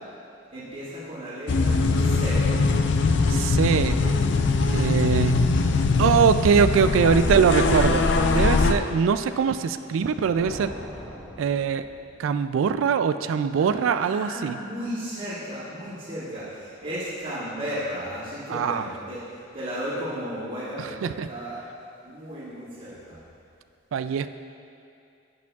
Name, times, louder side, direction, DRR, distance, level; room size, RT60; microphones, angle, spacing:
voice 1, 0.5-2.4 13.5-19.2 19.5-21.6 22.0-23.2, equal, 45° right, -15 dB, 2.0 m, -34 dB
sound 1, 1.5-8.7, left 3 dB, 60° left, 0.4 m, -21 dB
voice 2, 3.3-4.0 4.7-5.5 6.0-8.0 8.3-10.7 11.4-11.8 12.2-14.6 18.5-18.9 20.8-21.3 23.9-24.3, right 6 dB, 85° right, 12 dB, 0.3 m, -22 dB
Thunder, 9.8-12.4, left 1 dB, 5° left, 1.2 m, -41 dB
10.5 x 8.4 x 2.4 m, 2.5 s
head